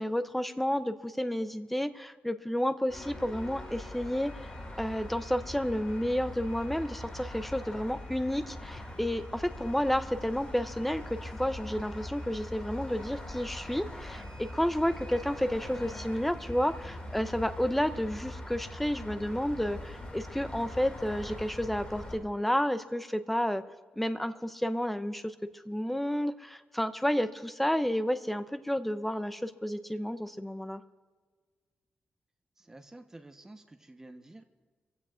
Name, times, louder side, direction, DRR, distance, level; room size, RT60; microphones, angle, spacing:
voice 1, 0.0-4.3 4.8-23.6 24.0-25.3 25.7-30.8, equal, 5° left, 10 dB, 0.6 m, -31 dB
sound 1, 2.9-22.2, left 1 dB, 30° left, 2.3 m, -42 dB
voice 2, 32.6-34.4, right 2 dB, 15° right, 5 dB, 1.0 m, -50 dB
24.5 x 15.5 x 2.5 m, 1.4 s
wide cardioid pair, 170°, 4 cm